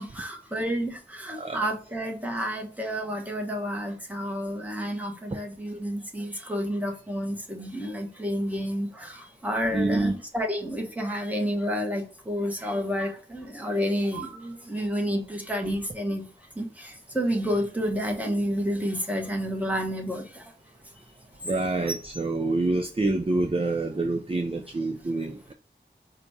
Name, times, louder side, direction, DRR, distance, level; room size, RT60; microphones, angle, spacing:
voice 1, 0.0-16.2 16.6-20.4 21.9-22.0, equal, 10° right, 1.1 m, -30 dB
voice 2, 1.3-1.6 9.7-10.1 21.4-25.5, right 2 dB, 30° right, 0.5 m, -27 dB
5.0 x 2.3 x 4.1 m
wide cardioid pair, 65°, 19 cm